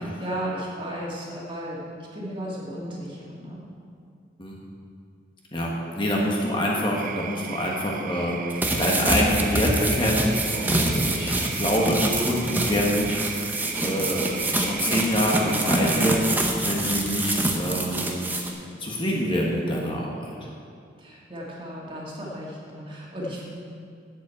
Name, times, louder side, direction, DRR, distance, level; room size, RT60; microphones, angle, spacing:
voice 1, 0.0-1.8 2.1-3.6 21.0-23.4, equal, 25° right, -5 dB, 2.1 m, -34 dB
voice 2, 5.5-16.2 16.6-18.1 18.8-20.5, equal, 25° left, -3 dB, 1.3 m, -26 dB
sound 1, 6.9-16.4, right 9 dB, 45° right, 0.4 m, -37 dB
sound 2, 8.5-18.5, right 1 dB, 10° right, 0.8 m, -26 dB
7.6 x 7.6 x 8.5 m, 2.3 s
head